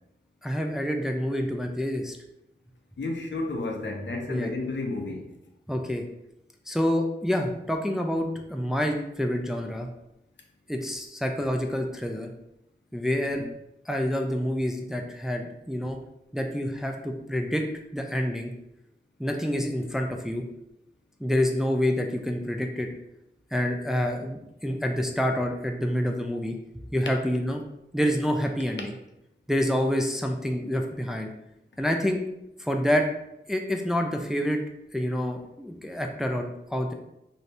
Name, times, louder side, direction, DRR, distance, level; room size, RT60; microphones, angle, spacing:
voice 1, 0.4-2.2 4.3-4.5 5.7-6.0 6.7-9.9 10.7-12.3 12.9-13.4 13.9-16.0 16.3-17.6 17.9-18.5 19.2-20.4 21.2-22.9 23.5-26.6 26.9-27.6 27.9-28.9 29.5-31.3 31.8-32.2 32.6-33.1 33.5-34.6 34.9-36.9, equal, ahead, 3 dB, 0.4 m, -27 dB
voice 2, 3.0-5.3, left 2 dB, 70° left, 2 dB, 0.5 m, -31 dB
2.7 x 2.6 x 3.2 m, 0.84 s
wide cardioid pair, 45°, 19 cm